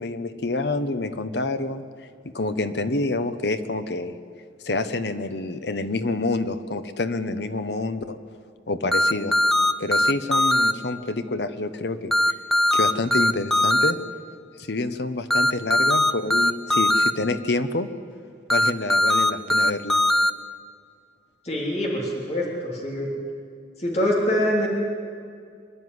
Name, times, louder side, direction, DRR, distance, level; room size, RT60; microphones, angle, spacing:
voice 1, 0.0-1.8 2.2-4.1 4.6-8.2 8.7-9.3 9.8-12.1 12.7-14.0 14.6-17.9 18.5-20.0, left 2 dB, 75° left, 11 dB, 1.0 m, -27 dB
sound 1, 8.9-10.7 12.1-13.9 15.3-17.1 18.5-20.3, left 1 dB, ahead, 0.4 m, -19 dB
voice 2, 21.4-23.1 23.8-24.7, equal, 35° left, -3 dB, 3.3 m, -24 dB
25.0 x 11.5 x 9.6 m, 2.2 s
head